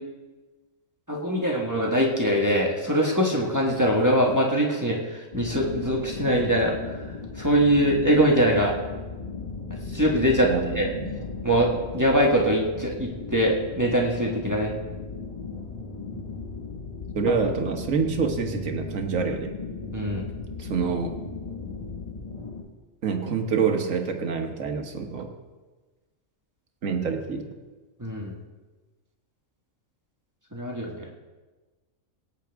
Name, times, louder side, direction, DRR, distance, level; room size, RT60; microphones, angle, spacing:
voice 1, 1.1-6.7 7.4-8.7 9.9-10.9 11.4-14.7 19.9-20.2 28.0-28.3 30.5-31.1, equal, 15° right, -2 dB, 1.4 m, -23 dB
sound 1, 5.3-22.6, left 4 dB, 30° left, 1.2 m, -36 dB
voice 2, 10.4-11.1 17.1-19.5 20.6-21.1 23.0-25.3 26.8-27.4, right 5 dB, 70° right, 4 dB, 1.5 m, -27 dB
17.5 x 9.2 x 3.5 m, 1.3 s
omnidirectional pair, 1.4 m